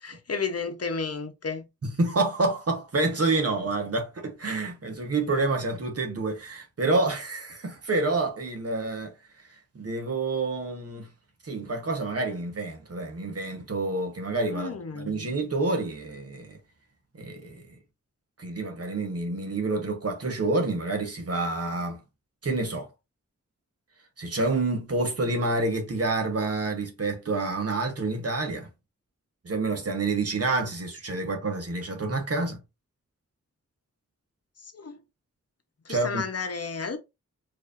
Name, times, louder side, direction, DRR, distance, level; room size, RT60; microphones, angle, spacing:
voice 1, 0.0-1.7 14.5-15.3 34.6-35.0 35.9-37.0, left 5 dB, 55° left, 0.8 m, -32 dB
voice 2, 1.8-9.1 9.7-11.1 11.4-16.6 17.1-17.8 18.4-22.0 22.4-22.9 24.2-28.7 29.4-32.6 35.9-36.2, right 3 dB, 55° right, 1.1 m, -28 dB
4.7 x 2.7 x 2.5 m
cardioid pair, 50°, 30 cm